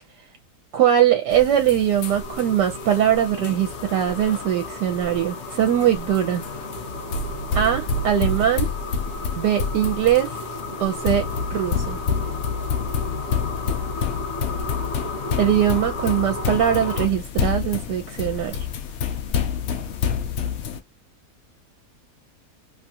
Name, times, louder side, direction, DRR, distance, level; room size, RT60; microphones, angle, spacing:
voice 1, 0.7-6.4 7.5-8.7 9.3-10.4 10.8-12.0 15.4-18.7, right 10 dB, 80° right, 1.2 m, -21 dB
sound 1, 1.3-20.8, left 6 dB, 85° left, 0.6 m, -29 dB
sound 2, 2.0-17.1, left 2 dB, 60° left, 1.1 m, -34 dB
2.9 x 2.4 x 2.7 m
omnidirectional pair, 1.8 m